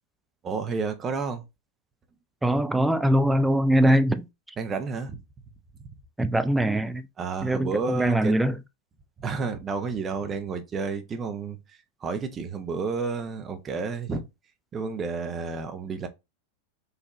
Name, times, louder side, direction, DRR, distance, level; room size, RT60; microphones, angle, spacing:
voice 1, 0.4-1.4 4.6-5.2 5.8-5.9 7.2-8.4 9.2-11.6 12.0-14.2 14.7-16.1, right 4 dB, 25° right, 0.8 m, -30 dB
voice 2, 2.4-4.3 6.2-7.1 7.4-8.6, right 1 dB, 5° right, 0.3 m, -22 dB
4.2 x 2.7 x 3.1 m
figure-of-eight pair, 90°, 0 cm